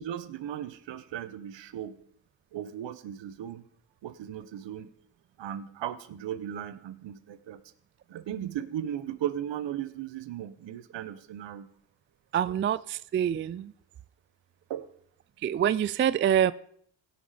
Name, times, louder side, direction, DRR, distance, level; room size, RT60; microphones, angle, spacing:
voice 1, 0.0-2.0 2.5-3.6 4.0-4.9 5.4-7.6 8.1-11.7 12.5-12.6 14.7-14.8, right 10 dB, 65° right, 1.1 m, -36 dB
voice 2, 12.3-13.7 15.4-16.5, right 9 dB, 30° right, 0.3 m, -26 dB
17.0 x 6.0 x 5.1 m
supercardioid pair, 65°, 46 cm